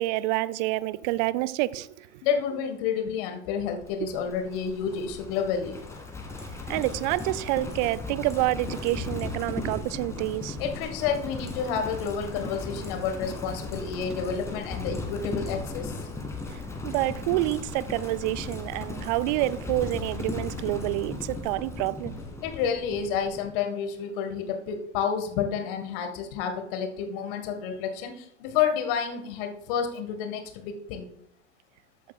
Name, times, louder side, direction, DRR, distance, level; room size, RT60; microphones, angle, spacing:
voice 1, 0.0-2.1 6.7-10.6 16.8-22.2, right 17 dB, 40° right, 0.5 m, -28 dB
voice 2, 2.2-5.8 10.6-16.0 22.4-31.1, left 7 dB, 45° left, 1.7 m, -30 dB
Livestock farm animals working animals, 3.9-23.5, left 3 dB, 10° left, 1.9 m, -37 dB
14.0 x 8.3 x 2.4 m
figure-of-eight pair, 85°, 36 cm